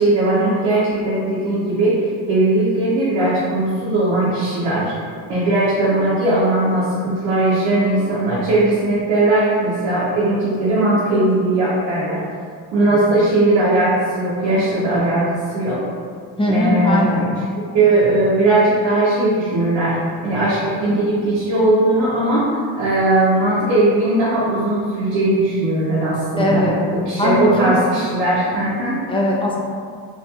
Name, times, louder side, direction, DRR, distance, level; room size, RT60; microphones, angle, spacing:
voice 1, 0.0-4.9 5.3-12.2 12.7-15.8 16.5-17.3 17.7-20.0 20.2-22.5 22.8-26.6 26.9-29.0, right 2 dB, 90° right, -9 dB, 0.7 m, -18 dB
voice 2, 12.8-13.2 16.4-17.3 26.4-26.8 27.2-27.8 29.1-29.6, left 1 dB, 15° left, -4 dB, 0.4 m, -19 dB
2.7 x 2.6 x 2.3 m, 2.1 s
cardioid pair, 75°, 42 cm